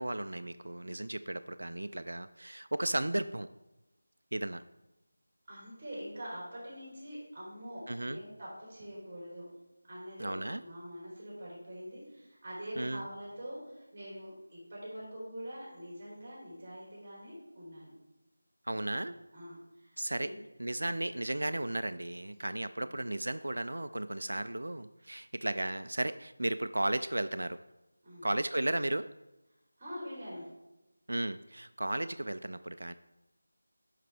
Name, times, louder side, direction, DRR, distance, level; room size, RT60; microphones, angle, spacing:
voice 1, 0.0-3.5 4.3-4.6 7.9-8.2 10.2-10.6 12.8-13.0 18.7-19.1 20.0-20.3 20.6-27.6 28.2-29.1 31.1-32.9, right 1 dB, 80° right, 11 dB, 0.3 m, -34 dB
voice 2, 5.5-9.5 9.9-17.9 18.7-20.4 22.8-23.0 28.0-28.3 29.8-30.5, equal, 20° right, -7 dB, 3.2 m, -45 dB
10.5 x 5.8 x 3.3 m, 1.0 s
figure-of-eight pair, 175°, 0 cm